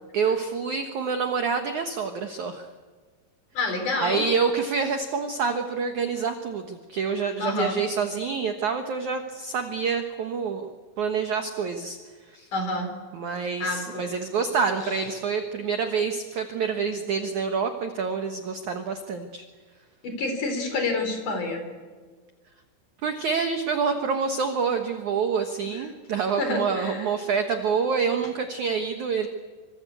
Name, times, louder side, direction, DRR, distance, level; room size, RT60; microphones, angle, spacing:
voice 1, 0.1-2.7 4.0-10.7 11.0-12.0 12.2-12.5 13.1-19.4 23.0-29.3, right 5 dB, 70° right, 6 dB, 1.8 m, -27 dB
voice 2, 3.5-4.2 7.4-7.8 12.5-12.9 13.6-14.1 14.9-15.0 20.0-21.6 26.4-27.1, left 3 dB, 45° left, 5 dB, 5.0 m, -28 dB
26.5 x 25.5 x 8.4 m, 1.5 s
omnidirectional pair, 5.5 m